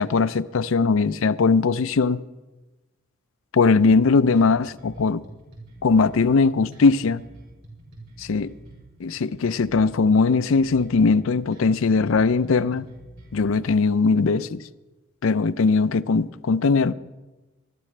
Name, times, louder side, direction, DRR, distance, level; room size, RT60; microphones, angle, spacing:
voice 1, 0.0-2.2 3.5-5.2 5.8-7.2 8.2-8.5 9.0-12.9 13.3-14.6 15.2-16.9, left 4 dB, 65° left, 0.5 m, -20 dB
sound 1, 3.9-13.5, right 1 dB, 55° right, 5.9 m, -46 dB
21.0 x 13.0 x 3.3 m
head